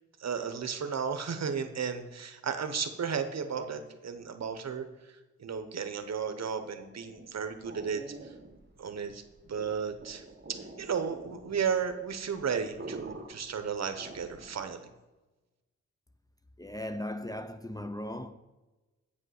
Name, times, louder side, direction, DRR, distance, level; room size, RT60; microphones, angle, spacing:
voice 1, 0.2-4.8 5.4-8.0 8.8-9.2 9.5-10.2 10.5-14.9, right 6 dB, 60° right, 0.9 m, -34 dB
sound 1, 6.9-14.7, right 3 dB, 35° right, 1.4 m, -47 dB
voice 2, 16.6-18.3, left 1 dB, 15° left, 0.5 m, -37 dB
8.5 x 5.4 x 6.4 m
cardioid pair, 70°, 29 cm